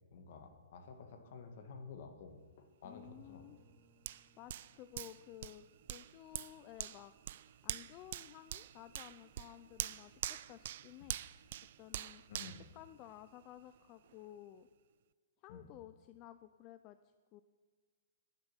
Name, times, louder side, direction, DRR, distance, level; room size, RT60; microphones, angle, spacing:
voice 1, 0.1-3.5 12.3-12.7 15.5-15.7, left 5 dB, 55° left, 6 dB, 1.8 m, -52 dB
voice 2, 2.8-3.6 4.4-7.1 7.6-11.2 11.8-12.2 12.7-14.7 15.4-17.0 17.3-17.4, left 13 dB, 30° left, 11 dB, 0.4 m, -54 dB
Bowed string instrument, 3.0-7.9, right 1 dB, 10° right, 1.6 m, -69 dB
Hands, 4.1-13.6 14.0-14.2, right 12 dB, 55° right, 0.4 m, -45 dB
10.5 x 8.9 x 7.3 m, 1.5 s
hypercardioid pair, 145°, 0 cm